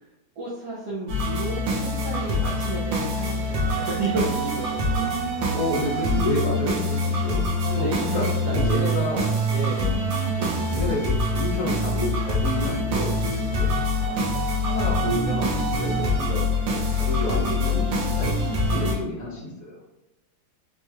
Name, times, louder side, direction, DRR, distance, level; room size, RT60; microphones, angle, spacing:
voice 1, 0.4-5.1 7.2-7.3 7.8-9.0 9.5-9.9 10.3-10.6 13.9-14.6 16.0-16.1, right 2 dB, 65° right, -5 dB, 1.1 m, -33 dB
sound 1, 1.1-18.9, left 1 dB, 80° right, 1.5 m, -25 dB
voice 2, 5.5-9.3 10.4-13.2 13.5-13.7 14.6-19.8, left 1 dB, 55° left, -4 dB, 1.2 m, -30 dB
4.3 x 3.0 x 2.3 m, 0.93 s
omnidirectional pair, 2.0 m